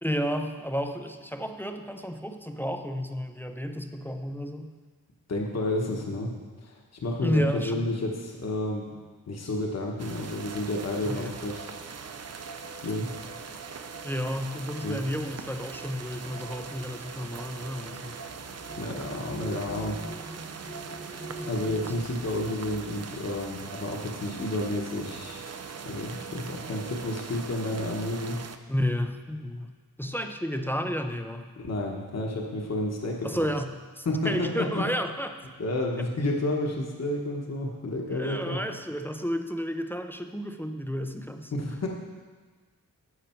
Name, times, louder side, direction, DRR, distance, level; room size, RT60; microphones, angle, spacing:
voice 1, 0.0-4.7 7.2-7.9 11.0-11.3 14.0-18.1 28.7-29.7 30.0-31.5 33.2-33.7 34.0-35.3 38.1-41.5, equal, 5° left, 6 dB, 0.5 m, -31 dB
voice 2, 5.3-6.3 6.6-8.9 9.3-11.7 12.8-13.1 14.8-15.0 18.8-20.0 21.4-25.4 25.9-28.4 31.6-33.4 34.0-34.8 35.6-38.6 41.5-41.9, left 1 dB, 50° left, -1 dB, 1.2 m, -30 dB
sound 1, 10.0-28.6, right 5 dB, 50° right, 0.5 m, -41 dB
sound 2, 18.1-24.8 25.7-25.8 26.2-26.8, right 1 dB, 85° left, 3.1 m, -45 dB
11.0 x 8.2 x 4.5 m, 1.4 s
wide cardioid pair, 125°, 34 cm